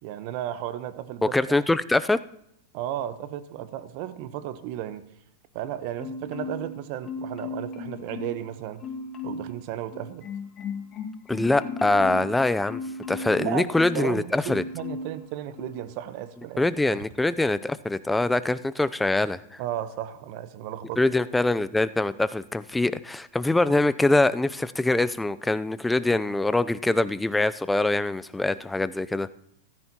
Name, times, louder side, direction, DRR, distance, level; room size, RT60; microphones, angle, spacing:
voice 1, 0.0-1.5 2.7-5.0 5.5-8.8 9.2-10.2 13.4-17.0 19.6-21.0, right 12 dB, 55° right, 13 dB, 0.9 m, -34 dB
voice 2, 1.2-2.2 11.3-12.8 13.1-14.6 16.6-19.6 21.0-29.3, left 2 dB, 5° left, 15 dB, 0.5 m, -24 dB
Marimba xylophone, 6.0-6.8 7.0-8.5 8.8-9.5 9.9-14.1 14.4-15.2 15.6-15.8, left 4 dB, 35° left, 1.8 m, -36 dB
15.0 x 13.5 x 2.9 m, 0.75 s
hypercardioid pair, 105°, 0 cm